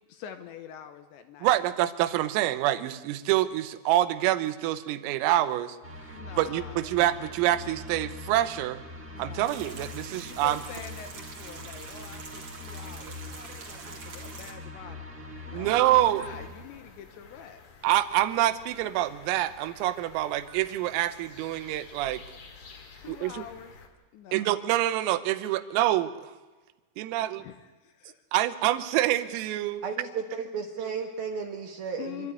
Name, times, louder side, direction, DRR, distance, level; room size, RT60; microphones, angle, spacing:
voice 1, 0.1-1.5 6.1-6.9 9.1-9.7 10.2-15.1 15.5-17.6 23.0-23.7 24.1-24.5 27.4-28.2 32.0-32.3, left 9 dB, 75° left, 9 dB, 2.9 m, -45 dB
voice 2, 1.4-5.8 6.4-8.8 9.2-10.6 15.5-16.3 17.8-22.2 23.1-23.4 24.3-26.3 27.0-27.5 28.3-29.8, right 14 dB, 85° right, 12 dB, 3.6 m, -26 dB
sound 1, 5.8-16.5, left 2 dB, 20° right, 2.3 m, -43 dB
sound 2, 9.4-14.5, right 4 dB, 40° right, 2.1 m, -45 dB
sound 3, 15.7-23.9, left 5 dB, 50° left, 2.3 m, -51 dB
voice 3, 29.8-32.3, right 6 dB, 65° right, 5 dB, 2.5 m, -34 dB
25.5 x 12.5 x 9.5 m, 1.2 s
omnidirectional pair, 5.9 m